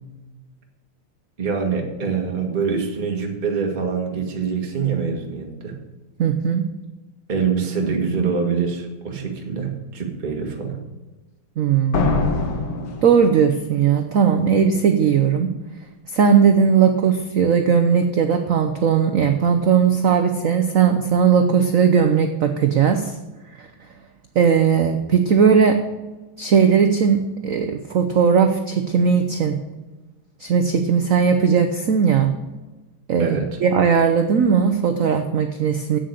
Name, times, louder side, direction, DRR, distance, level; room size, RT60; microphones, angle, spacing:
voice 1, 1.4-5.7 7.3-10.8 33.2-33.6, right 5 dB, 25° right, 1 dB, 1.5 m, -24 dB
voice 2, 6.2-6.6 11.6-12.1 13.0-15.5 16.1-23.2 23.6-23.7 24.3-25.8 26.4-29.6 30.4-32.3 33.1-36.0, right 6 dB, 85° right, 7 dB, 0.7 m, -18 dB
sound 1, 11.9-13.7, left 3 dB, 65° left, 1.9 m, -23 dB
8.5 x 7.6 x 6.5 m, 1.1 s
omnidirectional pair, 2.4 m